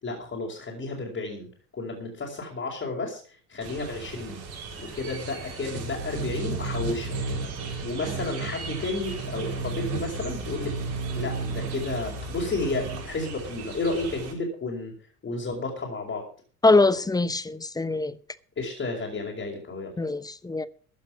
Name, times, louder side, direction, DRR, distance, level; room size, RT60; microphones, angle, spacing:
voice 1, 0.0-1.5 1.7-4.4 4.8-7.2 7.8-10.7 11.1-14.9 15.2-16.2 18.6-19.9, left 3 dB, 25° left, 4.7 m, -32 dB
sound 1, 3.6-14.3, right 3 dB, 55° right, 7.5 m, -34 dB
voice 2, 16.6-18.1 20.0-20.7, left 3 dB, 10° left, 0.9 m, -22 dB
15.0 x 8.7 x 6.1 m
figure-of-eight pair, 70°, 46 cm